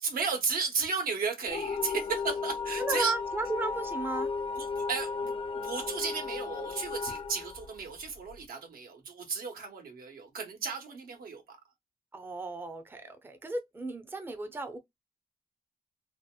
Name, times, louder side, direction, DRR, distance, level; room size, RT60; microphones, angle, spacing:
voice 1, 0.0-3.1 4.6-11.6, right 5 dB, 80° right, 1.2 m, -34 dB
sound 1, 1.5-8.4, left 4 dB, 40° left, 0.3 m, -35 dB
voice 2, 2.8-4.3 12.1-14.8, right 2 dB, 15° right, 0.6 m, -34 dB
2.9 x 2.8 x 2.3 m
wide cardioid pair, 115°, 15 cm